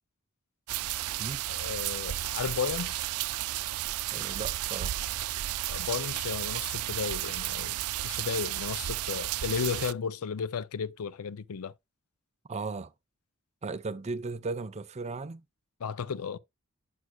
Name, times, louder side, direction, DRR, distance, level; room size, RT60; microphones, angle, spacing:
sound 1, 0.7-9.9, right 14 dB, 85° right, 0.4 m, -33 dB
voice 1, 1.5-3.1 5.7-7.8 8.0-11.7 15.8-16.4, left 6 dB, 80° left, 0.5 m, -34 dB
voice 2, 4.1-5.0 12.5-12.9 13.6-15.4, right 3 dB, 30° right, 0.5 m, -36 dB
11.0 x 6.4 x 2.2 m
head